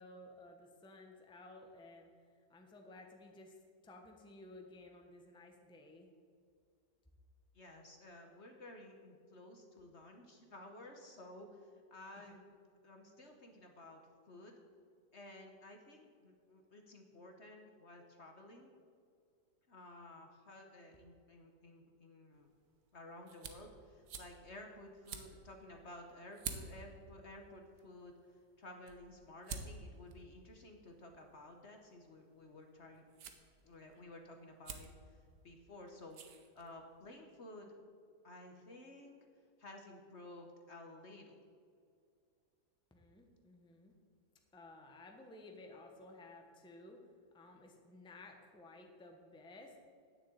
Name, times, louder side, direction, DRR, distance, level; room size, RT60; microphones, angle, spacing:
voice 1, 0.0-2.1 2.5-3.5 3.8-6.1 12.3-12.4 42.9-43.9 44.5-47.0 47.3-49.7, left 2 dB, 5° left, 2 dB, 0.9 m, -56 dB
voice 2, 7.5-12.5 12.8-14.5 15.1-18.7 19.7-22.5 22.9-33.0 33.6-35.2 35.4-36.2 36.5-37.7 38.2-39.2 39.6-41.4, left 1 dB, 45° left, 3 dB, 1.2 m, -54 dB
sound 1, 22.3-37.1, right 5 dB, 65° right, 1.4 m, -52 dB
9.7 x 7.5 x 8.3 m, 2.3 s
omnidirectional pair, 1.8 m